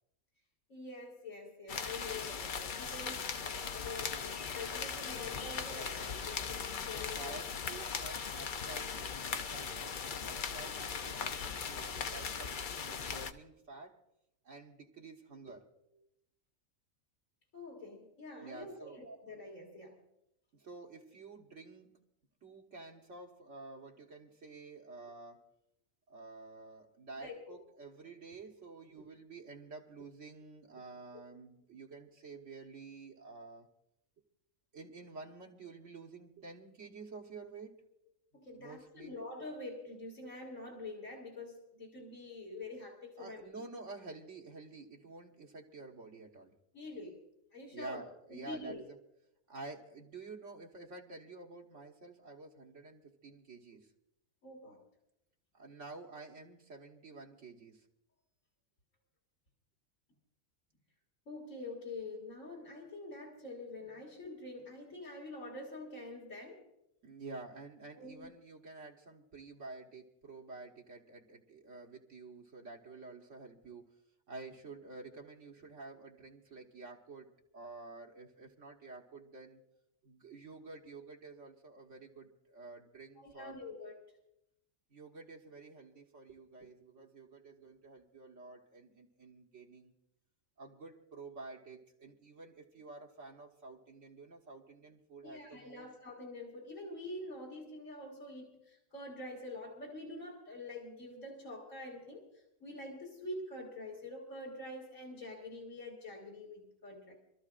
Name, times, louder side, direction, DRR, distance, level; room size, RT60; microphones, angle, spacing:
voice 1, 0.7-7.4 17.5-20.0 27.2-27.4 38.3-43.5 46.7-47.2 47.5-48.0 48.3-48.8 54.4-54.8 61.3-66.7 67.9-68.3 83.2-84.0 95.2-102.3 102.6-107.1, left 2 dB, 75° left, -4 dB, 2.8 m, -46 dB
sound 1, 1.7-13.3, left 6 dB, 50° left, 0.6 m, -39 dB
voice 2, 7.0-14.0 14.4-15.7 18.4-19.0 20.5-22.0 22.4-25.4 26.1-33.7 34.7-37.7 38.3-39.1 43.2-46.5 47.7-49.0 49.5-53.9 55.5-57.9 67.0-73.9 74.3-79.6 80.0-83.6 84.9-89.9 90.6-95.9, right 3 dB, 65° right, 0 dB, 1.7 m, -50 dB
27.5 x 13.5 x 2.5 m, 0.80 s
omnidirectional pair, 1.4 m